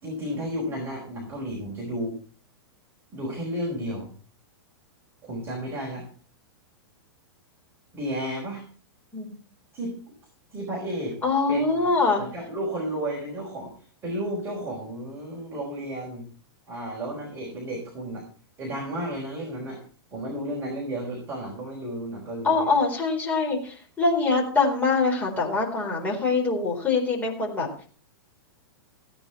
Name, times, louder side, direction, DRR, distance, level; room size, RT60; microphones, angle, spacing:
voice 1, 0.0-2.2 3.1-4.1 5.2-6.1 7.9-8.6 9.7-10.0 10.5-11.2 11.5-16.3 16.7-18.2 18.6-19.8 20.1-22.7, right 1 dB, 15° right, -2 dB, 4.6 m, -33 dB
voice 2, 11.2-12.2 22.4-27.7, left 3 dB, 10° left, -1 dB, 4.2 m, -24 dB
16.0 x 9.6 x 4.4 m, 0.41 s
hypercardioid pair, 155°, 13 cm